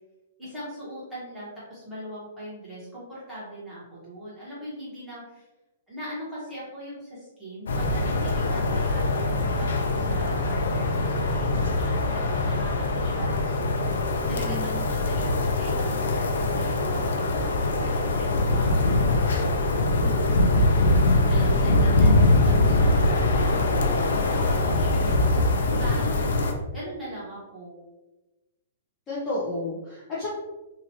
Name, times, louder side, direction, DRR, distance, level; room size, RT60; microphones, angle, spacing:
voice 1, 0.4-5.5 5.9-14.0 14.3-20.3 21.2-25.5 25.8-27.8, right 1 dB, 5° right, -11 dB, 1.3 m, -41 dB
sound 1, 7.7-26.5, left 2 dB, 90° left, 0.5 m, -23 dB
voice 2, 14.2-14.8 29.1-30.3, left 2 dB, 15° left, -8 dB, 0.6 m, -33 dB
2.9 x 2.6 x 2.8 m, 1.0 s
hypercardioid pair, 170°, 0 cm